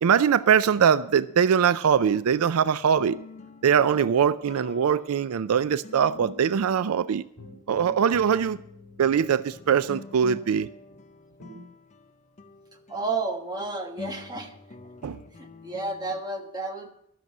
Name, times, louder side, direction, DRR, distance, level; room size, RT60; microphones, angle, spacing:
voice 1, 0.0-3.2 3.6-7.2 7.7-8.6 9.0-10.7 15.0-15.2, right 7 dB, 85° right, 0.4 m, -22 dB
sound 1, 2.4-7.6 8.3-8.4 9.1-16.2, left 3 dB, 30° left, 0.7 m, -47 dB
sound 2, 6.1-7.0 7.4-11.0 11.4-11.6, left 1 dB, 65° left, 2.5 m, -47 dB
voice 2, 12.9-14.5 15.6-16.9, right 3 dB, 20° right, 1.4 m, -31 dB
13.5 x 6.8 x 7.3 m
head